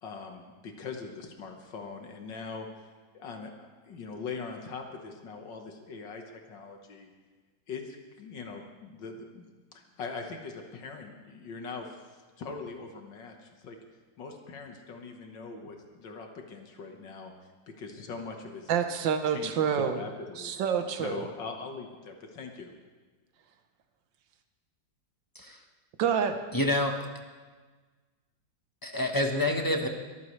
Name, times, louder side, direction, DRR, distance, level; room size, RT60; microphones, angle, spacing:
voice 1, 0.0-7.1 7.7-13.8 14.2-17.3 17.7-18.7 19.2-20.6 20.9-22.7, left 4 dB, 80° left, 3 dB, 2.0 m, -42 dB
voice 2, 18.7-20.0 20.4-21.2 26.0-26.4, right 7 dB, 85° right, 7 dB, 1.6 m, -27 dB
voice 3, 26.5-26.9 28.8-29.9, left 1 dB, 15° left, 3 dB, 0.9 m, -27 dB
22.5 x 14.5 x 3.2 m, 1.4 s
omnidirectional pair, 2.0 m